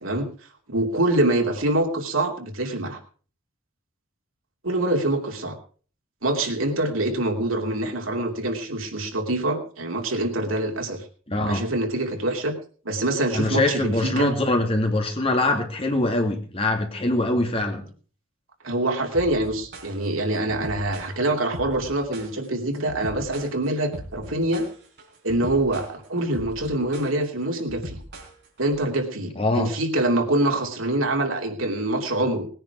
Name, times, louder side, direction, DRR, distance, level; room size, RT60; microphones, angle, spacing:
voice 1, 0.7-3.0 4.6-5.6 6.2-11.0 11.5-12.6 12.8-14.3 18.6-24.7 25.2-28.0 28.6-32.5, right 1 dB, 80° right, 3 dB, 3.0 m, -25 dB
voice 2, 11.3-11.6 13.3-17.8 29.4-29.7, left 2 dB, 30° left, 3 dB, 2.7 m, -23 dB
sound 1, 19.1-28.7, right 1 dB, 55° right, 4.6 m, -39 dB
19.5 x 10.0 x 4.8 m, 0.41 s
head